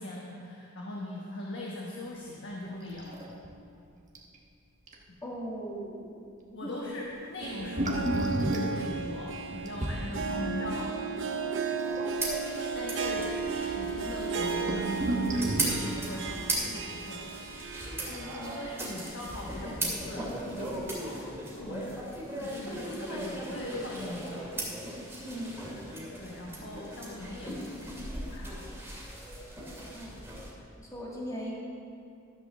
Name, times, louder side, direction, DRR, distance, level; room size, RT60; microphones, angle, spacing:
voice 1, 0.0-3.2 6.5-11.0 12.7-15.1 15.4-17.7 18.0-21.2 21.6-22.0 22.3-24.5 26.2-28.0 28.3-28.7, left 1 dB, 60° left, -3 dB, 1.1 m, -40 dB
sound 1, 2.9-3.5 3.8-3.9 4.1-4.4 4.9-5.0 7.4-10.0 11.7-12.4 13.2-13.3 13.5-13.6 14.2-15.9 18.1-19.0 20.3-20.4 20.9-21.0, right 1 dB, 35° right, 1.2 m, -32 dB
voice 2, 5.2-6.3 6.6-6.8 25.2-25.6 29.9-30.2 30.8-31.5, equal, 15° left, -5 dB, 2.0 m, -38 dB
Harp, 7.2-19.3 19.6-19.7 20.6-20.7, right 5 dB, 65° right, 0.7 m, -35 dB
sound 2, 12.1-30.5, right 1 dB, 10° right, 2.5 m, -38 dB
13.0 x 5.4 x 6.8 m, 2.4 s
head